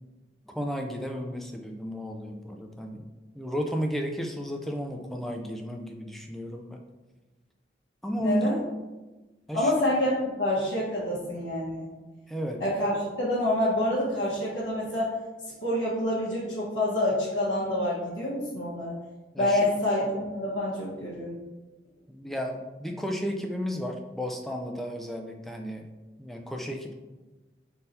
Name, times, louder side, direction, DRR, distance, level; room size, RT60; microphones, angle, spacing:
voice 1, 0.5-3.1 3.3-6.8 8.0-8.5 9.5-9.7 12.3-12.6 19.3-19.6 22.1-25.9 26.2-26.9, equal, ahead, 2 dB, 0.3 m, -33 dB
voice 2, 8.2-8.6 9.5-11.9 12.6-15.1 15.6-18.9 19.4-21.4, left 1 dB, 90° left, -10 dB, 1.1 m, -27 dB
3.8 x 2.6 x 4.1 m, 1.2 s
head